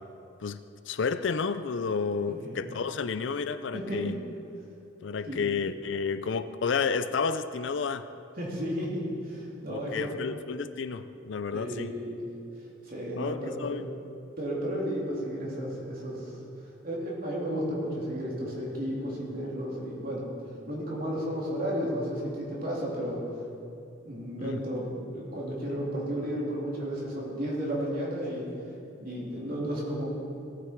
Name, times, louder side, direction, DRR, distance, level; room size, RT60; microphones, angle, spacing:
voice 1, 0.4-4.2 5.0-8.1 9.7-11.9 13.1-13.9 24.4-24.6, left 5 dB, 65° left, 12 dB, 0.5 m, -31 dB
voice 2, 2.3-2.6 3.7-4.1 5.2-5.4 8.4-10.1 11.5-12.2 12.8-13.8 14.4-16.4 16.8-20.3 20.7-23.2 24.0-28.5 29.0-30.1, equal, 45° right, -5 dB, 3.2 m, -33 dB
18.0 x 8.6 x 4.5 m, 2.6 s
head